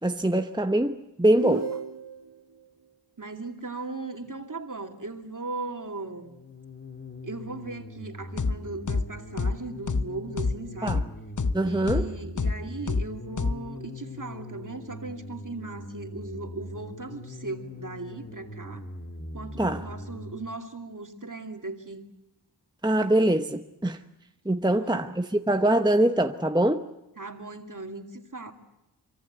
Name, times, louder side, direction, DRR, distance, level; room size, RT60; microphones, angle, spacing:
voice 1, 0.0-1.7 10.8-11.0 11.5-12.1 19.6-19.8 22.8-24.0 24.4-26.9, right 1 dB, 10° right, 1.0 m, -23 dB
sound 1, 1.4-2.4, right 4 dB, 60° right, 2.1 m, -33 dB
voice 2, 3.2-6.3 7.2-11.0 11.6-18.8 19.3-22.0 24.6-25.0 27.2-28.5, right 3 dB, 45° right, 2.6 m, -38 dB
sound 2, 6.1-20.5, left 1 dB, 25° left, 2.5 m, -41 dB
sound 3, 8.4-8.5 8.9-9.0 9.4-9.5 9.9-10.0 10.4-10.5 10.9-11.0 11.4-11.5 11.9-12.0 12.4-12.5 12.9-13.0 13.4-13.5, left 4 dB, 45° left, 0.9 m, -25 dB
25.5 x 24.0 x 8.0 m
wide cardioid pair, 70°, 44 cm